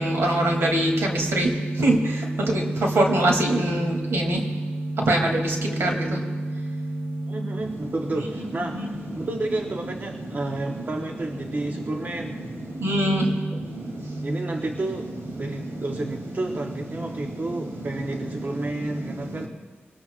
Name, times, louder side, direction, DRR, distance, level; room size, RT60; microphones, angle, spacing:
voice 1, 0.0-1.5 1.8-2.0 2.5-2.6 2.9-4.4 5.1-6.2 8.7-8.9 12.8-13.2, right 1 dB, 90° right, 1 dB, 2.7 m, -22 dB
voice 2, 7.3-12.5 13.5-13.6 14.2-15.1 15.4-19.5, right 2 dB, 45° right, 2 dB, 1.0 m, -31 dB
23.0 x 19.0 x 2.5 m, 1.3 s
wide cardioid pair, 80°, 4 cm